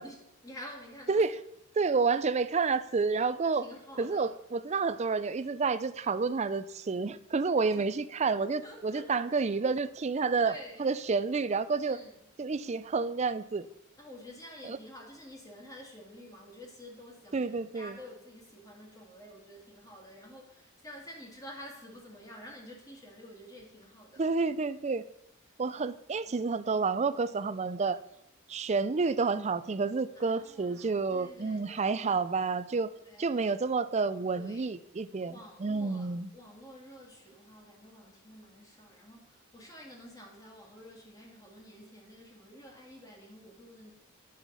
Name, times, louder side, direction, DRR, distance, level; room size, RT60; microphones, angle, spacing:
voice 1, 0.0-1.2 3.5-4.3 7.6-7.8 8.6-9.1 10.4-10.9 11.8-12.1 14.0-24.2 25.7-26.3 30.2-32.0 32.4-32.5 33.0-33.4 34.3-34.7 35.2-43.9, equal, 15° left, -1 dB, 2.2 m, -50 dB
voice 2, 1.8-3.6 4.0-10.5 10.8-12.0 12.4-13.7 14.6-14.8 17.3-18.0 24.2-25.0 25.6-28.0 28.5-32.9 33.2-36.3, right 4 dB, 35° right, 13 dB, 0.4 m, -29 dB
10.0 x 6.4 x 5.4 m, 0.81 s
head